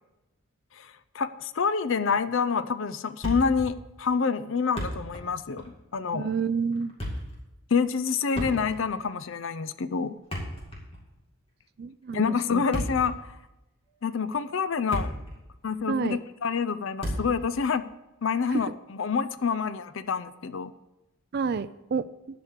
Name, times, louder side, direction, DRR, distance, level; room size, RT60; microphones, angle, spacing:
voice 1, 0.7-6.3 7.7-10.1 12.1-13.4 14.0-15.1 15.6-17.9 18.2-20.7, left 5 dB, 55° left, 14 dB, 0.5 m, -27 dB
Thump thud, 3.2-3.7 4.0-4.1 4.6-5.3 5.6-5.8 6.7-7.4 8.3-9.0 10.1-11.1 12.5-13.2 13.9-14.0 14.6-15.4 15.6-15.8 17.0-17.4, equal, 25° left, 2.2 m, -33 dB
voice 2, 6.1-6.9 11.8-12.2 12.5-12.6 15.9-16.2 21.3-22.1, right 5 dB, 45° right, 12 dB, 0.3 m, -29 dB
12.0 x 5.1 x 8.1 m, 0.98 s
head